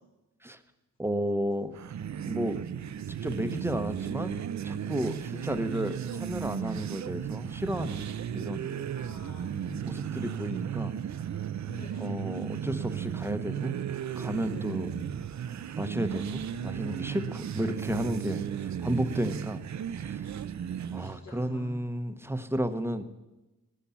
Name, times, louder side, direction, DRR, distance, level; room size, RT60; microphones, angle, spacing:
voice 1, 1.0-1.8 2.3-2.6 3.2-4.4 4.6-8.0 8.3-8.7 9.8-10.9 12.0-13.8 14.2-14.9 15.8-19.6 20.0-20.3 20.9-23.0, equal, 10° right, 9 dB, 1.1 m, -32 dB
sound 1, 1.7-21.2, right 9 dB, 65° right, 0.7 m, -35 dB
voice 2, 8.9-9.8 11.6-12.3 14.5-15.0 20.9-21.6, left 1 dB, 65° left, -5 dB, 4.2 m, -47 dB
18.0 x 10.0 x 7.2 m, 1.0 s
cardioid pair, 90°, 31 cm